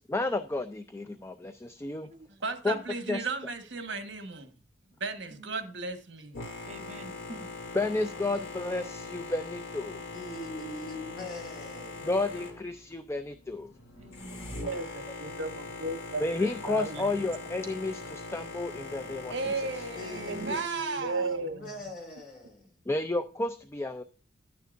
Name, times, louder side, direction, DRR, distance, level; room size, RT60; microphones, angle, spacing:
voice 1, 0.0-2.1 2.6-2.8 3.1-3.2 7.7-10.0 12.0-13.7 16.2-19.3 22.9-24.0, left 2 dB, 15° left, 0.4 m, -31 dB
voice 2, 2.4-4.5 5.0-6.4 19.3-21.4, right 4 dB, 65° right, 1.4 m, -35 dB
voice 3, 5.3-5.8 6.6-7.5 14.0-14.7 20.1-20.6, right 2 dB, 35° right, 0.9 m, -47 dB
Boat Water vehicle, 6.3-20.6, left 3 dB, 75° left, 2.6 m, -41 dB
voice 4, 10.1-12.1 19.9-22.7, left 1 dB, 50° left, 4.9 m, -42 dB
voice 5, 14.7-17.1 20.3-20.6 21.0-21.7, right 2 dB, 80° right, 0.9 m, -35 dB
11.5 x 9.3 x 2.5 m
head